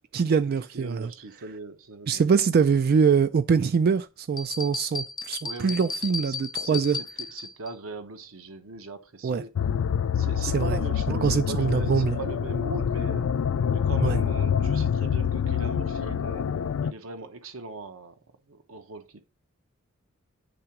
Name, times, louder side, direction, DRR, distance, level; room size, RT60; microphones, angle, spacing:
voice 1, 0.1-1.1 2.1-7.0 9.2-9.4 10.4-10.8 11.2-12.2 14.0-14.2, right 6 dB, 50° right, 0.3 m, -23 dB
voice 2, 0.7-2.3 5.4-9.5 10.1-13.3 13.7-16.5 16.8-18.2 18.5-19.2, right 3 dB, 90° right, 1.0 m, -40 dB
sound 1, 4.4-7.7, left 4 dB, 20° left, 0.4 m, -34 dB
sound 2, 9.6-16.9, left 7 dB, 85° left, 0.4 m, -26 dB
8.9 x 3.8 x 5.8 m
head